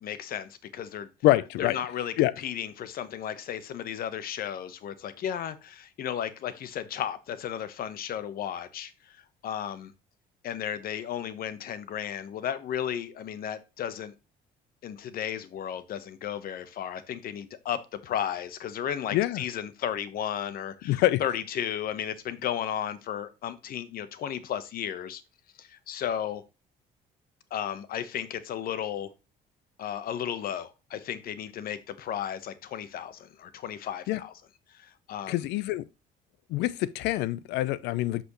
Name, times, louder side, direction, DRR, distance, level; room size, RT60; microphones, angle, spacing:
voice 1, 0.0-1.1 1.6-9.9 10.4-14.1 14.8-25.2 25.6-26.4 27.5-29.1 29.8-34.3 34.7-35.4, left 9 dB, 60° left, 1.1 m, -34 dB
voice 2, 1.2-1.8 2.2-2.3 19.1-19.4 20.8-21.2 34.1-34.2 35.3-35.8 36.5-38.2, left 16 dB, 90° left, 0.6 m, -25 dB
8.2 x 6.2 x 3.1 m
cardioid pair, 110°, 17 cm